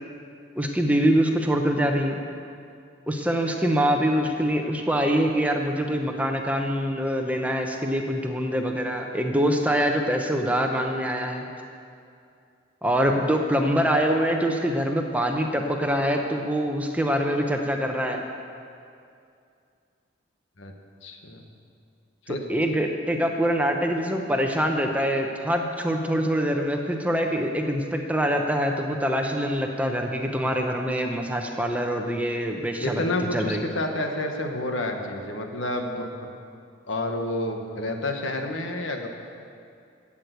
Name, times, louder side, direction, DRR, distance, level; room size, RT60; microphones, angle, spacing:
voice 1, 0.6-2.2 3.1-11.5 12.8-18.2 22.5-33.0 33.3-33.6, equal, 5° right, 3 dB, 0.8 m, -24 dB
voice 2, 21.0-21.4 22.3-22.4 32.8-36.1 36.9-39.1, left 1 dB, 75° left, 3 dB, 1.4 m, -29 dB
12.5 x 8.6 x 8.0 m, 2.4 s
head